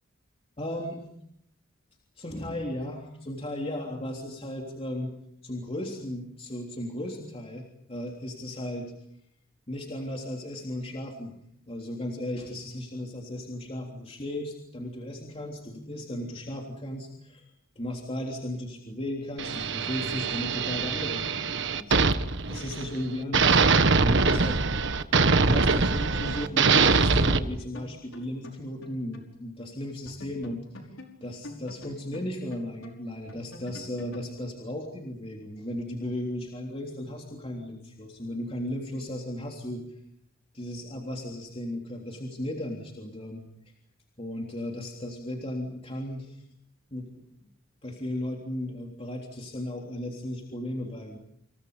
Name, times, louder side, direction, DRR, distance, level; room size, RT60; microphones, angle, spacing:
voice 1, 0.6-1.1 2.2-5.1 5.4-8.9 9.7-11.3 11.7-17.5 17.7-22.0 22.5-23.6 24.0-24.6 25.4-30.6 31.2-39.9 40.5-43.4 44.2-46.4 46.9-47.2 47.8-51.2, left 1 dB, 30° left, 0 dB, 3.4 m, -35 dB
sound 1, 19.4-23.0 23.3-27.4, right 4 dB, 60° right, 1.4 m, -23 dB
sound 2, 25.9-29.3 29.6-29.7 30.1-34.3, left 1 dB, 70° left, 5.5 m, -45 dB
29.0 x 28.5 x 5.2 m, 0.71 s
head